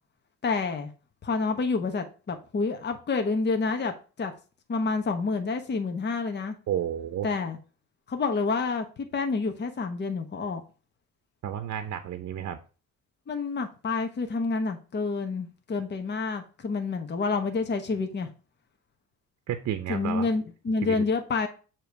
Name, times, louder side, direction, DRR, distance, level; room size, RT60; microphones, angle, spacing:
voice 1, 0.4-0.9 1.2-4.3 4.7-6.5 7.2-7.6 8.1-10.6 13.3-18.3 19.9-21.5, left 4 dB, 35° left, 1.0 m, -28 dB
voice 2, 6.7-7.3 11.4-12.6 19.5-20.3 20.8-21.0, right 10 dB, 60° right, 0.7 m, -31 dB
6.9 x 3.1 x 4.6 m
cardioid pair, 90°, 30 cm